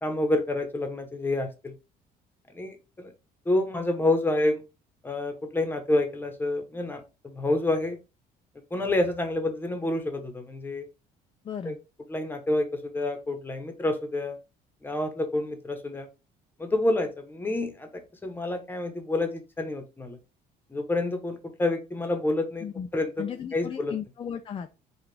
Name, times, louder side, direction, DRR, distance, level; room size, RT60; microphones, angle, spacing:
voice 1, 0.0-1.7 2.5-3.1 3.5-4.6 5.0-8.0 8.7-10.9 11.6-11.7 12.1-14.4 14.8-16.1 16.6-17.9 18.2-20.2 20.7-22.7 22.9-23.9, left 2 dB, 10° left, 6 dB, 1.0 m, -28 dB
voice 2, 11.4-11.8 22.6-22.9 23.2-24.8, left 8 dB, 30° left, 7 dB, 0.4 m, -35 dB
4.7 x 2.4 x 3.2 m, 0.29 s
cardioid pair, 110°, 17 cm